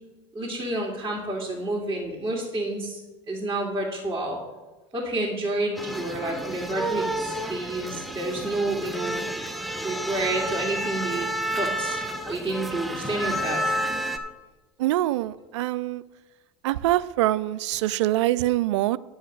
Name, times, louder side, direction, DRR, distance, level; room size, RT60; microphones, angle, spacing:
voice 1, 0.3-3.0 3.3-4.4 4.9-9.2 9.8-11.3 11.5-12.0 12.3-13.7, right 2 dB, 20° right, -5 dB, 2.4 m, -29 dB
sound 1, 5.8-14.2, right 1 dB, ahead, 0.9 m, -30 dB
voice 2, 14.8-16.0 16.6-19.0, right 15 dB, 85° right, 18 dB, 0.4 m, -24 dB
10.0 x 4.8 x 7.9 m, 1.2 s
supercardioid pair, 95°, 15 cm